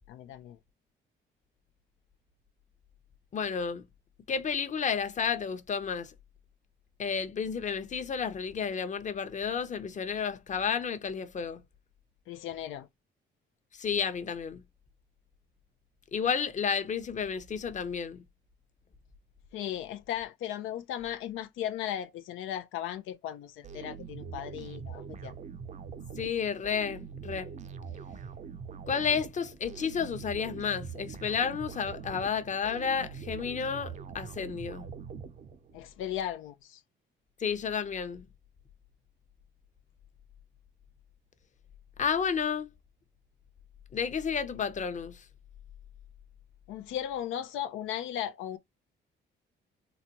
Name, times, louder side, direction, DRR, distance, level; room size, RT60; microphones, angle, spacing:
voice 1, 0.1-0.6 12.3-12.9 19.5-25.3 35.7-36.8 46.7-48.6, left 10 dB, 85° left, 0.5 m, -36 dB
voice 2, 3.3-3.8 4.3-6.1 7.0-11.6 13.8-14.6 16.1-18.2 26.2-27.5 28.9-34.9 37.4-38.2 42.0-42.7 43.9-45.2, left 6 dB, 40° left, 0.7 m, -31 dB
sound 1, 23.6-35.8, right 6 dB, 35° right, 0.5 m, -43 dB
4.0 x 2.2 x 2.9 m
cardioid pair, 90°, 20 cm